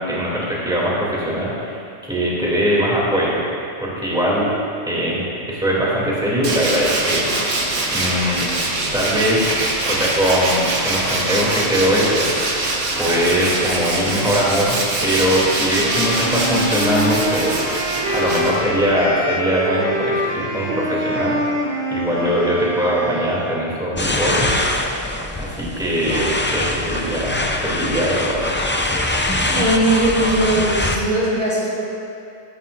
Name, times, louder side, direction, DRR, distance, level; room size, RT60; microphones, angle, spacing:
voice 1, 0.0-3.4 3.8-4.5 4.9-7.3 7.9-8.4 8.9-9.6 9.8-12.4 13.0-17.6 18.1-21.4 21.9-24.5 25.4-28.5, equal, 5° right, -6 dB, 2.7 m, -21 dB
Tools, 6.4-18.9, right 2 dB, 75° right, 1.7 m, -23 dB
Wind instrument woodwind instrument, 15.8-23.7, equal, 55° right, 1.5 m, -25 dB
sound 1, 24.0-31.0, left 1 dB, 20° left, 0.3 m, -23 dB
voice 2, 29.5-31.8, right 1 dB, 40° right, -8 dB, 2.3 m, -19 dB
14.5 x 14.0 x 2.6 m, 2.5 s
omnidirectional pair, 1.3 m